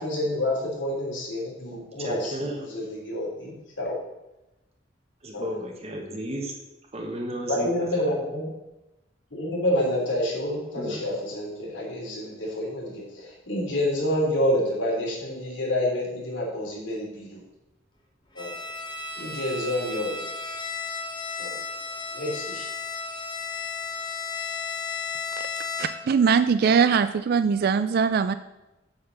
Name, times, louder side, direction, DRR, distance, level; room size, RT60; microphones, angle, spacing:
voice 1, 0.0-2.3 2.7-3.9 5.3-5.5 7.5-8.6 9.3-17.4 18.4-18.6 19.2-20.2 21.4-21.6 22.1-22.7, left 1 dB, 75° left, -3 dB, 3.3 m, -28 dB
voice 2, 2.0-2.7 5.2-6.6 6.9-7.9 10.7-11.0, equal, 35° right, 1 dB, 1.3 m, -33 dB
Bowed string instrument, 18.4-26.2, left 4 dB, 25° left, 1.3 m, -34 dB
voice 3, 25.8-28.3, right 6 dB, 55° right, 11 dB, 0.3 m, -21 dB
8.7 x 4.5 x 6.9 m, 0.95 s
head